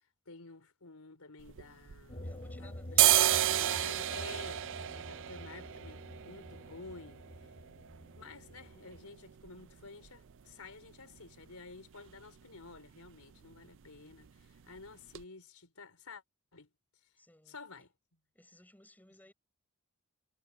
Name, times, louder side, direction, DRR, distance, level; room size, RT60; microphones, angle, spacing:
voice 1, 0.3-2.3 2.6-3.0 3.3-7.5 8.2-16.2 16.5-16.7 17.5-17.9, left 3 dB, 85° left, 4.3 m, -51 dB
sound 1, 1.4-2.5 2.8-10.5 10.8-10.9 11.2-11.8 12.1-12.3 12.5-12.8 13.1-13.8 14.1-14.3 14.8-14.9 15.1-15.2, right 13 dB, 60° right, 0.5 m, -32 dB
sound 2, 2.1-9.0, left 1 dB, 35° left, 1.5 m, -48 dB
voice 2, 2.2-3.2 17.2-17.9 18.3-19.3, left 1 dB, 10° left, 6.0 m, -60 dB
head